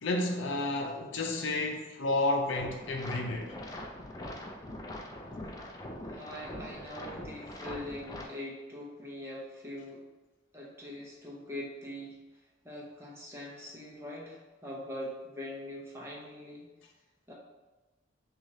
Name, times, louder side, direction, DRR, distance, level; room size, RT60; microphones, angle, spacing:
voice 1, 0.0-3.5, left 2 dB, 80° left, 0.6 m, -31 dB
sound 1, 2.5-8.3, left 1 dB, 20° left, 0.4 m, -42 dB
voice 2, 6.1-10.0 10.5-12.2 12.6-16.7 17.3-17.4, left 1 dB, 15° right, 0.8 m, -42 dB
6.0 x 2.5 x 2.8 m
head